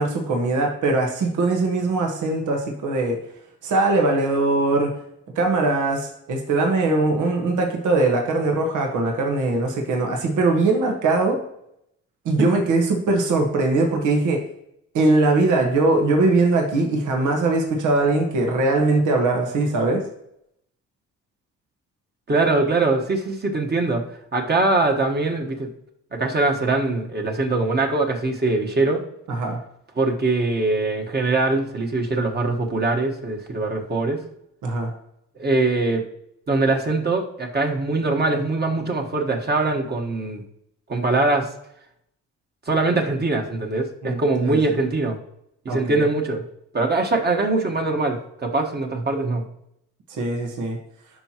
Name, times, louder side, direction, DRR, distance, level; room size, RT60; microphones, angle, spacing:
voice 1, 0.0-3.2 3.6-5.0 5.3-11.4 12.2-14.4 14.9-20.0 29.3-29.6 34.6-34.9 44.0-44.6 45.7-46.0 50.1-50.8, right 2 dB, 80° right, 2 dB, 1.5 m, -21 dB
voice 2, 22.3-24.0 24.3-25.7 26.1-29.0 30.0-34.2 35.4-36.0 36.5-40.4 40.9-41.5 42.7-45.2 45.6-46.4 46.7-49.4, right 3 dB, 35° right, 2 dB, 1.4 m, -22 dB
12.0 x 4.6 x 3.0 m, 0.76 s
cardioid pair, 90°, 30 cm